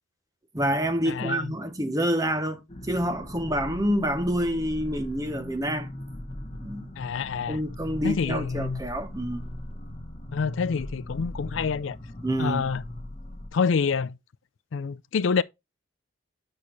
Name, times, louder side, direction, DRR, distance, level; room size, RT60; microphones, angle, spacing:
voice 1, 0.5-5.9 6.5-6.9 7.5-9.4 12.2-12.6, equal, 20° right, 0.8 m, -27 dB
voice 2, 1.1-1.5 7.0-7.6 8.0-8.8 10.3-12.0 12.4-12.8 13.5-14.2 14.7-15.4, left 5 dB, 85° left, 0.4 m, -27 dB
sound 1, 2.7-13.5, left 1 dB, 30° left, 1.0 m, -39 dB
8.5 x 5.8 x 3.1 m
head